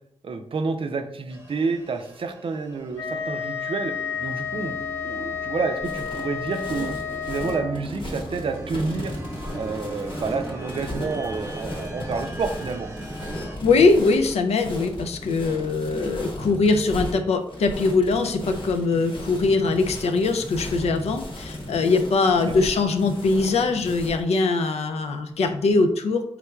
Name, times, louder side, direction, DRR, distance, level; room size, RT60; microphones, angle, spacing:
voice 1, 0.2-3.9 4.2-4.8 5.0-7.0 7.3-9.1 9.5-12.9, right 4 dB, 60° right, 7 dB, 0.4 m, -29 dB
sound 1, 1.3-13.6, right 1 dB, 25° right, 0.8 m, -39 dB
Wind instrument woodwind instrument, 2.9-7.8, left 7 dB, 25° left, 0.7 m, -31 dB
sound 2, 5.8-24.2, left 1 dB, 55° left, 0.9 m, -36 dB
voice 2, 13.6-26.2, left 3 dB, 85° left, 7 dB, 0.4 m, -22 dB
3.5 x 3.1 x 2.3 m, 0.74 s
cardioid pair, 60°, 10 cm